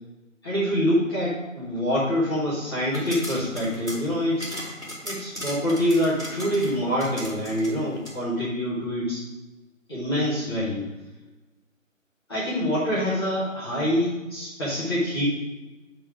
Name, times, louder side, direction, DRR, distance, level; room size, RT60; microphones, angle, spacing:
voice 1, 0.4-4.5 5.0-9.2 9.9-10.9 12.3-15.2, equal, 20° left, -12 dB, 1.5 m, -25 dB
sound 1, 2.8-8.2, equal, 5° right, 1.1 m, -37 dB
8.0 x 3.9 x 4.9 m, 1.1 s
figure-of-eight pair, 160°, 40 cm